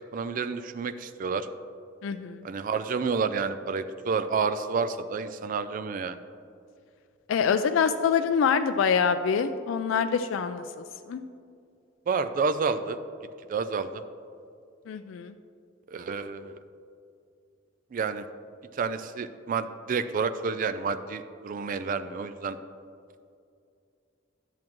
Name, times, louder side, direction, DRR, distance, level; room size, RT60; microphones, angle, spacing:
voice 1, 0.1-1.5 2.4-6.2 12.1-13.0 13.5-14.0 15.9-16.6 17.9-18.3 18.7-22.6, right 5 dB, 45° right, 11 dB, 0.3 m, -29 dB
voice 2, 2.0-2.5 7.3-11.2 14.9-15.3, left 6 dB, 80° left, 9 dB, 0.3 m, -25 dB
10.5 x 7.3 x 3.0 m, 2.5 s
head